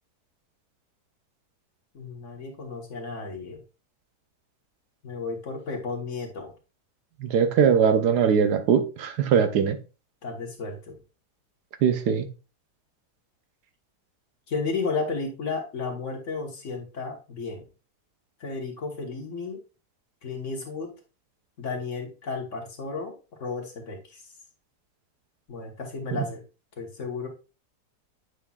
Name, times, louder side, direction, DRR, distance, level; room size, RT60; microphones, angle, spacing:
voice 1, 1.9-3.6 5.0-6.5 10.2-11.0 14.5-17.7 18.4-19.6 20.2-20.9 21.6-24.2 25.5-26.4 26.8-27.3, left 4 dB, 50° left, 1.5 m, -33 dB
voice 2, 7.2-9.8 11.8-12.3 26.1-26.2, right 7 dB, 80° right, 1.3 m, -21 dB
8.2 x 5.6 x 2.3 m
omnidirectional pair, 1.7 m